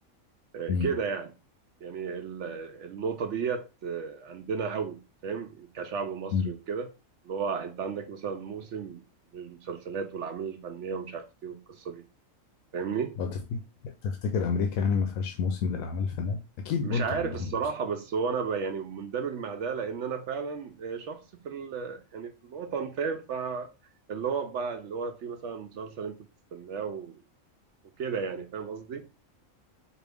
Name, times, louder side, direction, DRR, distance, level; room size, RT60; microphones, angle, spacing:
voice 1, 0.5-1.3 1.8-6.9 7.2-9.0 9.3-12.0 12.7-13.2 16.8-23.7 24.1-26.2 26.5-27.2 28.0-29.0, right 6 dB, 65° right, 0.8 m, -33 dB
voice 2, 13.2-16.4 16.6-17.6, left 5 dB, 85° left, 1.0 m, -29 dB
4.4 x 2.5 x 3.4 m
omnidirectional pair, 1.4 m